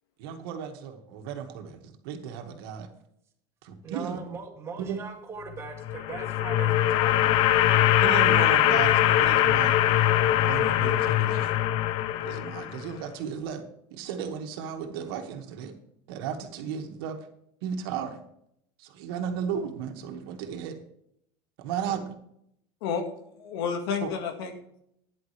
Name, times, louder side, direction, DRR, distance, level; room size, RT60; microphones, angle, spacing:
voice 1, 0.2-2.9 3.6-4.2 4.8-5.0 8.0-9.8 10.4-11.5 12.2-13.6 13.9-15.7 16.1-17.2 17.6-18.2 18.8-20.8 21.6-22.1 24.0-24.1, right 7 dB, 75° right, 5 dB, 2.1 m, -34 dB
voice 2, 3.8-7.3, right 5 dB, 20° right, 2 dB, 2.1 m, -40 dB
sound 1, 5.7-12.9, left 12 dB, 45° left, 0.7 m, -22 dB
voice 3, 23.4-24.8, left 6 dB, 75° left, 4 dB, 2.0 m, -31 dB
13.0 x 10.5 x 3.4 m, 0.73 s
cardioid pair, 165°, 13 cm